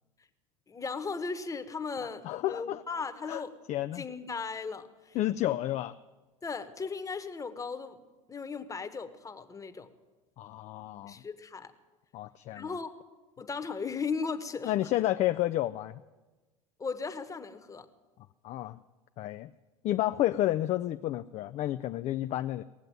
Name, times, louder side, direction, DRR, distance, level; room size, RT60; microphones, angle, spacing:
voice 1, 0.7-3.5 3.9-5.2 6.4-8.0 8.3-9.9 11.0-11.7 12.5-12.9 13.4-14.7 16.8-17.9, left 5 dB, 20° left, 9 dB, 1.2 m, -37 dB
voice 2, 2.0-2.8 3.3-3.4 3.7-4.1 5.1-6.0 10.4-11.2 12.1-12.7 14.7-16.0 18.4-18.8 19.2-19.5 19.8-22.6, left 14 dB, 40° left, 10 dB, 0.4 m, -31 dB
18.5 x 7.8 x 9.5 m, 1.2 s
hypercardioid pair, 80°, 18 cm